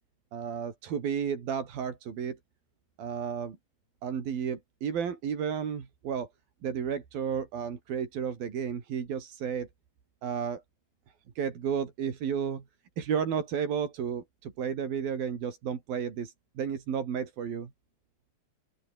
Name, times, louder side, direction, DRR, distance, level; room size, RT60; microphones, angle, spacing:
voice 1, 0.3-2.4 3.0-3.6 4.0-6.3 6.6-9.7 10.2-10.6 11.4-12.6 13.0-17.7, right 7 dB, 75° right, 5.0 m, -32 dB
open air
omnidirectional pair, 4.2 m